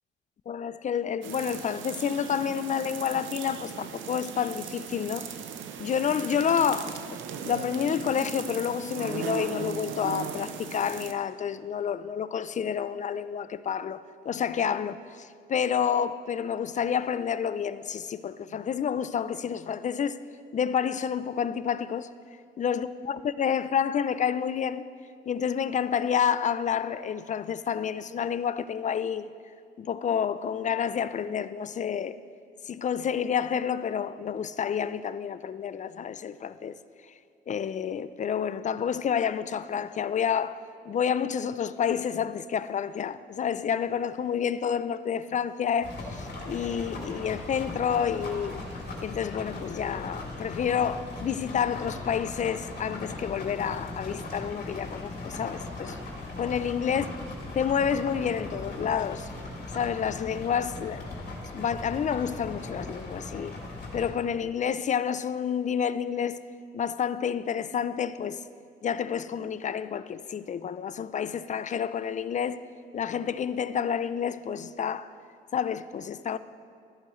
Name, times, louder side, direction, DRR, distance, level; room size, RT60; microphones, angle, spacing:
voice 1, 0.5-5.3 5.8-7.2 7.5-20.2 20.5-22.1 22.6-24.9 25.3-29.3 29.8-32.2 32.7-36.7 37.5-40.6 40.9-48.6 49.0-56.0 56.4-57.1 57.5-59.3 59.7-61.0 61.5-63.5 63.9-66.4 66.7-68.4 68.8-72.6 72.9-75.1 75.5-76.4, left 8 dB, 40° left, 0.4 m, -29 dB
sound 1, 1.2-11.1, right 7 dB, 75° right, 0.7 m, -38 dB
sound 2, 45.8-64.1, left 2 dB, 55° left, 2.9 m, -38 dB
14.0 x 11.0 x 3.1 m
cardioid pair, 90°, 20 cm